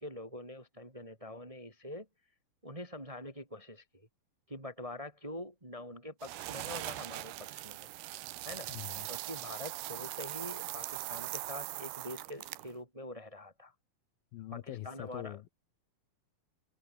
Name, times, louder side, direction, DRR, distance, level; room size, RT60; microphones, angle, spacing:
voice 1, 0.0-2.1 2.6-4.1 4.5-7.9 8.4-8.7 9.1-13.7 14.5-15.4, left 1 dB, 10° right, 1.9 m, -45 dB
sound 1, 6.2-12.8, right 17 dB, 85° right, 3.0 m, -41 dB
voice 2, 8.7-9.1 14.3-15.5, left 14 dB, 75° left, 2.6 m, -43 dB
omnidirectional pair, 4.5 m